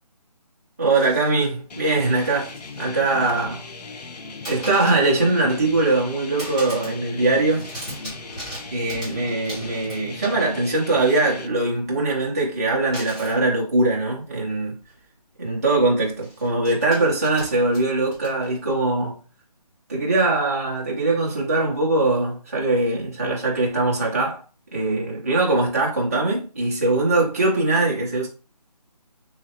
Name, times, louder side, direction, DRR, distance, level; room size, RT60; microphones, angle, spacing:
voice 1, 0.8-3.6 4.5-7.6 8.7-14.8 15.4-19.2 19.9-24.4 24.7-28.3, right 2 dB, 25° right, 0.5 m, -22 dB
sound 1, 0.9-1.5 2.0-2.9 3.2-3.8 4.4-5.2 5.6-6.1 6.4-7.0 7.3-10.7 12.9-13.4 14.4-14.5 14.8-15.0 16.0-18.7, equal, 10° left, 0.8 m, -39 dB
sound 2, 1.7-11.5, left 3 dB, 80° left, 0.5 m, -38 dB
3.1 x 2.4 x 2.8 m
hypercardioid pair, 170°, 20 cm